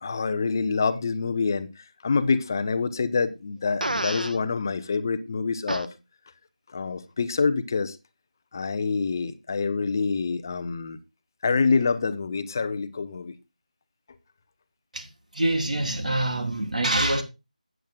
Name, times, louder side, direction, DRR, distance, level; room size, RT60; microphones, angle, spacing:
voice 1, 0.0-5.9 6.7-8.0 8.5-11.0 11.4-13.3, left 4 dB, 25° left, 0.7 m, -26 dB
Fart, 3.8-4.4 5.7-5.9, right 1 dB, 85° right, 1.1 m, -28 dB
voice 2, 14.9-17.2, right 1 dB, 65° right, 3.3 m, -25 dB
13.5 x 9.2 x 2.3 m
figure-of-eight pair, 165°, 4 cm